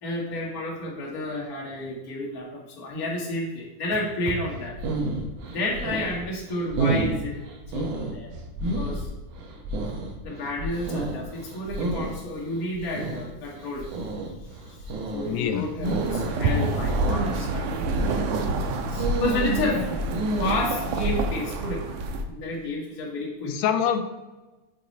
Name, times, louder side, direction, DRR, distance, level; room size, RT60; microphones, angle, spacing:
voice 1, 0.0-4.7 5.5-7.4 7.7-8.3 8.7-9.1 10.2-13.9 15.1-18.6 18.9-20.0 20.4-21.8 22.3-23.5, left 1 dB, 55° left, -4 dB, 1.0 m, -31 dB
sound 1, 4.5-20.7, right 2 dB, 90° right, 2.4 m, -31 dB
voice 2, 15.3-15.7 19.6-19.8 23.5-24.0, left 8 dB, 80° left, 8 dB, 1.7 m, -25 dB
sound 2, 15.8-22.2, right 2 dB, 75° right, 1.7 m, -28 dB
6.8 x 4.0 x 4.0 m, 1.1 s
omnidirectional pair, 3.5 m